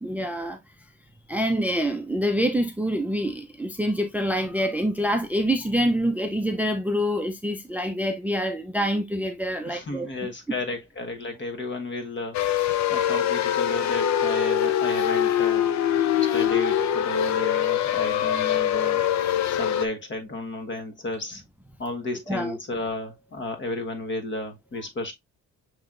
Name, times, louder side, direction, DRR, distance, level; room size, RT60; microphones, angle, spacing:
voice 1, 0.0-0.6 1.3-10.3 22.3-22.6, equal, 5° right, 0.5 m, -26 dB
voice 2, 9.6-12.6 12.9-15.7 16.2-19.1 19.5-21.4 21.8-25.1, left 2 dB, 40° left, 1.3 m, -33 dB
sound 1, 12.3-19.9, left 10 dB, 65° left, 0.6 m, -23 dB
6.9 x 3.1 x 2.4 m
cardioid pair, 90°, 30 cm